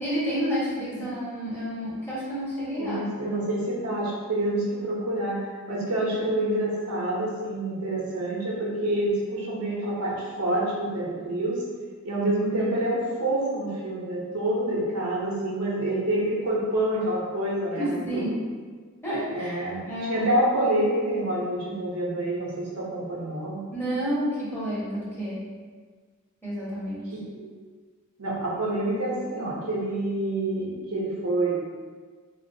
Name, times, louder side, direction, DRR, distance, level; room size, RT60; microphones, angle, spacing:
voice 1, 0.0-3.0 17.7-18.3 19.0-20.3 23.7-25.4 26.4-27.0, equal, 10° left, -10 dB, 1.1 m, -30 dB
voice 2, 2.8-11.6 12.0-18.3 19.3-19.8 20.1-23.6 27.3-27.5 28.2-31.7, right 1 dB, 85° right, -4 dB, 0.8 m, -27 dB
3.7 x 2.4 x 2.6 m, 1.5 s
head